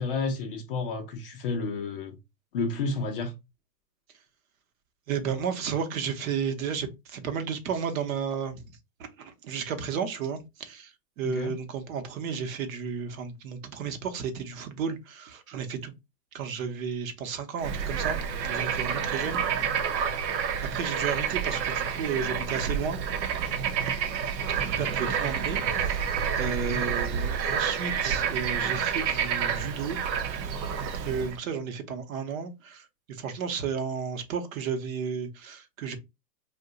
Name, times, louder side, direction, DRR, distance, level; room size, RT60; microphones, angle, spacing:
voice 1, 0.0-2.2 2.5-3.3 11.2-11.5 26.4-26.8, left 4 dB, 35° left, 0.4 m, -31 dB
voice 2, 5.1-15.9 16.3-19.4 20.7-23.0 24.5-30.0 31.0-36.0, right 6 dB, 55° right, 0.8 m, -33 dB
Bird / Frog, 17.6-31.4, right 7 dB, 85° right, 0.7 m, -29 dB
2.6 x 2.2 x 3.7 m
hypercardioid pair, 130°, 50 cm